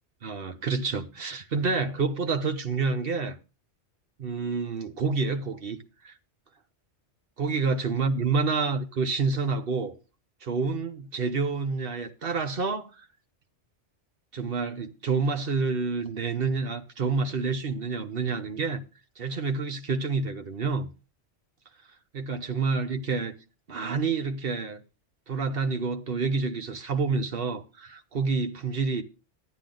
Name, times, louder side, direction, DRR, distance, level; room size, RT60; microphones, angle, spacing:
voice 1, 0.2-3.4 4.2-5.8 6.0-6.1 7.4-10.0 10.4-13.1 14.3-18.8 19.2-20.9 22.1-23.4 23.7-24.8 25.3-29.0, right 4 dB, 55° right, 1.2 m, -28 dB
12.0 x 9.2 x 3.9 m
omnidirectional pair, 1.2 m